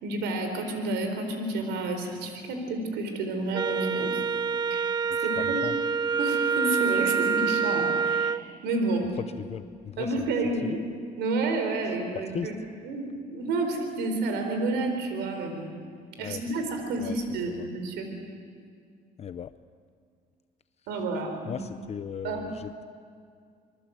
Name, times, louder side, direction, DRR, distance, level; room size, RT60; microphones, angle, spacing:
voice 1, 0.0-4.2 4.7-4.9 5.2-5.6 6.2-9.1 10.0-10.8 11.2-12.5 12.8-15.7 16.2-18.1 20.9-21.6 22.2-22.5, right 2 dB, 85° right, 5 dB, 4.4 m, -30 dB
Wind instrument woodwind instrument, 3.5-8.4, right 6 dB, 25° right, 0.7 m, -26 dB
voice 2, 5.1-5.7 9.5-10.3 10.6-10.8 12.3-12.5 16.2-16.4 17.0-17.2 17.6-17.7 19.2-19.5 21.4-22.8, left 8 dB, 40° left, 12 dB, 0.7 m, -37 dB
27.0 x 23.0 x 8.2 m, 2.2 s
cardioid pair, 110°, 17 cm